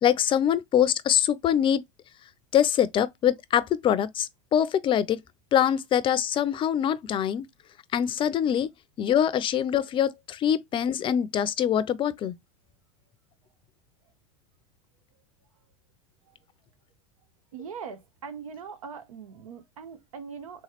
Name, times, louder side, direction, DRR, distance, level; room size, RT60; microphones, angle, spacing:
voice 1, 0.0-1.8 2.5-5.2 5.5-7.5 7.9-8.7 9.0-12.3, left 9 dB, 30° left, 0.5 m, -24 dB
voice 2, 17.5-20.6, right 6 dB, 90° right, 0.8 m, -41 dB
3.4 x 3.1 x 2.8 m
hypercardioid pair, 105°, 17 cm